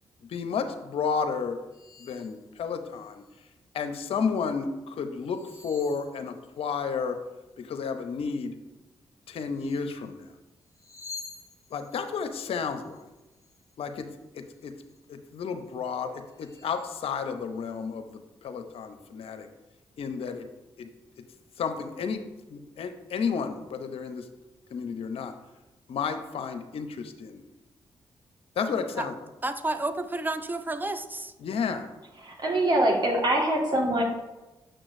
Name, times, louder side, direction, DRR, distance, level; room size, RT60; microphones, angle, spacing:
voice 1, 0.3-1.6 2.0-3.2 3.7-7.2 7.6-8.5 9.3-10.2 11.7-13.0 13.8-14.1 14.3-14.7 15.1-18.1 18.4-19.5 20.0-20.5 20.8-20.9 21.6-22.2 22.5-24.2 24.7-25.3 25.9-27.4 28.6-29.1 31.4-31.9, left 5 dB, 70° left, 0.6 m, -32 dB
sound 1, 1.7-2.4 2.9-3.5 5.2-6.8 9.5-10.0 10.6-14.1 14.5-15.0 15.6-15.7 16.2-17.0, left 4 dB, 35° left, 1.1 m, -49 dB
voice 2, 29.4-31.3, right 2 dB, 20° right, 0.5 m, -31 dB
voice 3, 32.2-34.0, right 1 dB, 45° right, 1.6 m, -24 dB
6.4 x 6.1 x 2.6 m
supercardioid pair, 50°, 10 cm